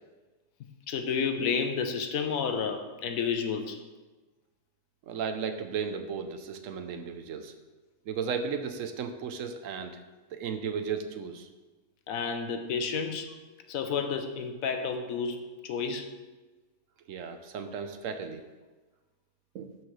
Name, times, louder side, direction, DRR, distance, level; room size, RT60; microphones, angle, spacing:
voice 1, 0.9-3.8 12.1-13.3 13.7-16.1, left 6 dB, 75° left, 7 dB, 1.1 m, -31 dB
voice 2, 5.0-7.5 8.1-9.9 10.3-11.5 17.1-18.4 19.5-19.7, right 6 dB, 70° right, 7 dB, 1.0 m, -35 dB
13.0 x 4.6 x 3.2 m, 1.2 s
omnidirectional pair, 1.5 m